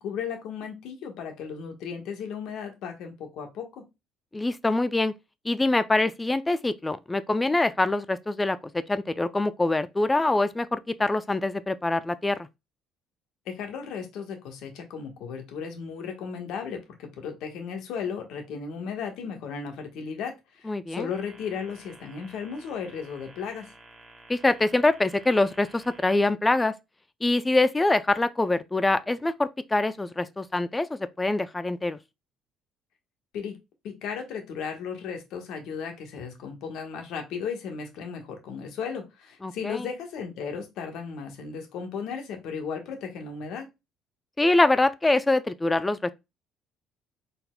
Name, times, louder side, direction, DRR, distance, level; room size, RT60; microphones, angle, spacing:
voice 1, 0.0-3.8 13.5-23.7 33.3-33.6 33.8-43.7, left 6 dB, 75° left, 1.2 m, -35 dB
voice 2, 4.3-5.1 5.5-12.5 20.7-21.1 24.3-26.7 27.2-32.0 39.4-39.9 44.4-46.1, left 2 dB, 15° left, 0.4 m, -24 dB
sound 1, 21.1-26.1, right 2 dB, 20° right, 1.5 m, -52 dB
4.1 x 4.0 x 2.2 m
supercardioid pair, 75°, 0 cm